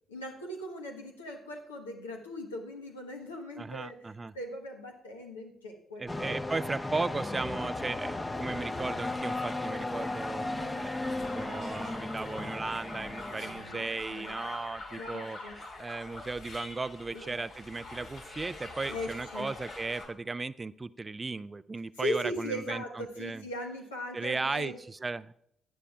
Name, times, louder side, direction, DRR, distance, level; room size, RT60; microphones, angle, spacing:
voice 1, 0.1-3.9 4.3-6.4 10.6-10.9 13.3-14.4 15.0-15.5 17.1-17.3 18.8-19.5 22.0-24.8, equal, 85° left, 1 dB, 1.3 m, -39 dB
voice 2, 3.6-4.3 6.0-23.4 24.1-25.3, right 3 dB, 30° right, 17 dB, 0.4 m, -36 dB
sound 1, 6.1-13.9, left 2 dB, 20° left, 0.8 m, -36 dB
sound 2, 8.3-20.1, left 2 dB, 60° left, 2.7 m, -45 dB
16.5 x 10.0 x 2.4 m, 0.73 s
figure-of-eight pair, 40°, 0 cm